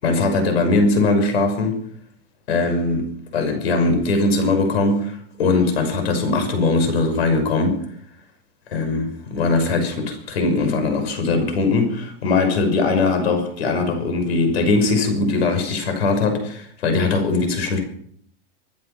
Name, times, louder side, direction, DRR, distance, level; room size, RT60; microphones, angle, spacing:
voice 1, 0.0-1.8 2.5-7.8 8.7-17.8, left 3 dB, 90° left, 7 dB, 5.9 m, -20 dB
25.0 x 9.8 x 5.8 m, 0.62 s
supercardioid pair, 170°, 30 cm